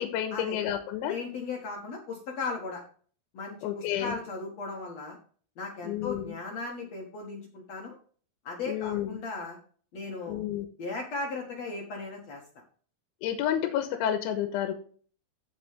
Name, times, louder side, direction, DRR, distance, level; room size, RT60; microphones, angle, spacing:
voice 1, 0.0-1.2 3.6-4.1 5.8-6.4 8.7-9.2 10.3-10.7 13.2-14.7, left 10 dB, 80° left, 7 dB, 3.3 m, -30 dB
voice 2, 1.1-2.8 3.3-5.2 5.6-8.0 8.4-9.6 9.9-10.4 10.8-12.4, left 3 dB, 55° left, 0 dB, 1.9 m, -37 dB
15.5 x 5.2 x 3.4 m, 0.43 s
omnidirectional pair, 5.4 m